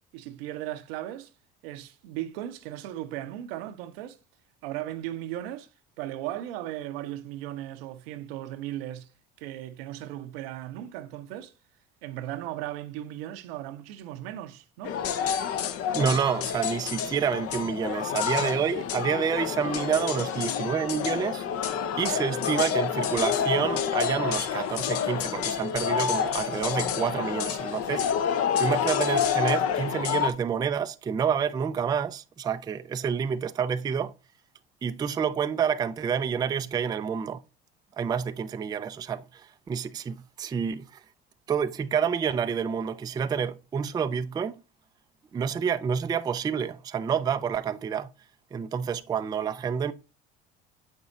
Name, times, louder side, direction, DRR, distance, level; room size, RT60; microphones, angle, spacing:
voice 1, 0.1-1.3 1.6-4.2 4.6-5.7 6.0-9.1 9.4-11.5 12.0-15.0, right 13 dB, 80° right, 0.7 m, -37 dB
sound 1, 14.8-30.3, left 8 dB, 50° left, 0.7 m, -28 dB
voice 2, 15.9-21.4 22.0-28.0 28.6-34.1 34.8-37.4 38.0-40.9 41.5-44.6 45.3-48.1 48.5-49.9, right 7 dB, 15° right, 0.3 m, -28 dB
6.8 x 5.4 x 2.5 m
hypercardioid pair, 75°, 29 cm